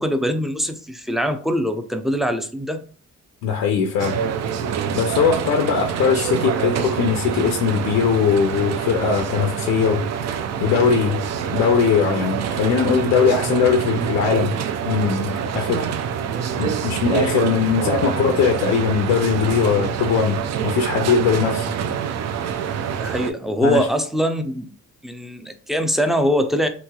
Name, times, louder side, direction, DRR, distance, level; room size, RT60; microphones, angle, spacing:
voice 1, 0.0-2.8 23.0-24.7 25.0-26.7, equal, ahead, 7 dB, 0.4 m, -22 dB
voice 2, 3.4-4.2 4.9-10.0 10.3-11.2 11.5-14.6 14.9-15.9 16.6-21.7 23.6-23.9, left 6 dB, 90° left, 4 dB, 0.5 m, -20 dB
sound 1, 4.0-23.3, right 7 dB, 60° right, 0.4 m, -26 dB
3.1 x 2.9 x 2.2 m, 0.41 s
cardioid pair, 90°, 30 cm